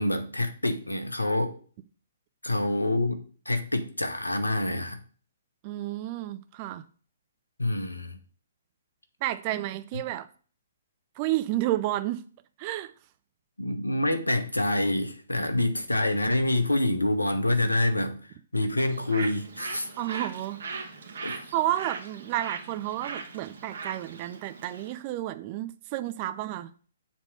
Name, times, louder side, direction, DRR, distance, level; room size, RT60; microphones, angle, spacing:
voice 1, 0.0-1.6 2.4-5.0 7.6-8.2 9.9-10.0 13.6-18.2 18.5-19.9 21.2-21.4, left 1 dB, 80° left, 1.0 m, -27 dB
voice 2, 5.6-6.8 9.2-10.3 11.2-12.2 12.6-12.9 20.0-20.6 21.2-26.7, right 14 dB, 30° right, 0.5 m, -31 dB
Bird, 18.8-25.0, right 4 dB, 55° right, 1.5 m, -40 dB
7.3 x 3.6 x 6.5 m
figure-of-eight pair, 125°, 0 cm